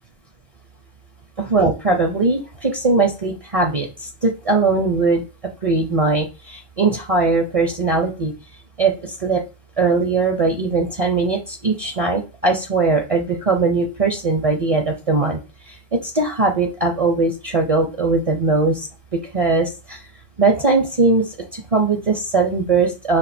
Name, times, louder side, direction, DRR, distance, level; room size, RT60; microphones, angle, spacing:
voice 1, 1.4-5.2 5.6-8.3 8.8-9.4 9.8-15.4 15.7-20.0 20.4-23.2, right 3 dB, 40° right, 3 dB, 0.6 m, -20 dB
5.1 x 2.5 x 4.2 m, 0.31 s
omnidirectional pair, 1.1 m